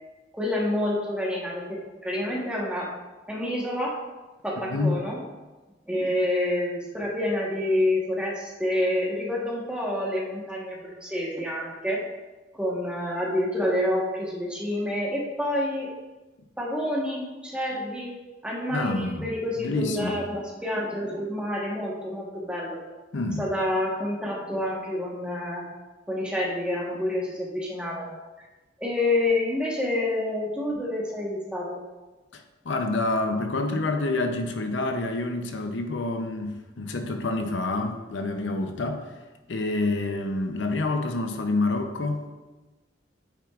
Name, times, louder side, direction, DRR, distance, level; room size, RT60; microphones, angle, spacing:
voice 1, 0.3-2.9 3.3-3.9 4.4-5.2 5.9-12.0 12.5-15.9 16.6-18.1 18.4-22.8 23.4-25.6 26.1-28.1 28.8-31.8, left 1 dB, 5° right, -4 dB, 1.2 m, -28 dB
voice 2, 4.7-5.1 18.7-20.2 23.1-23.5 32.3-39.1 39.5-42.3, left 2 dB, 80° left, 6 dB, 0.7 m, -28 dB
8.4 x 6.1 x 2.5 m, 1.2 s
head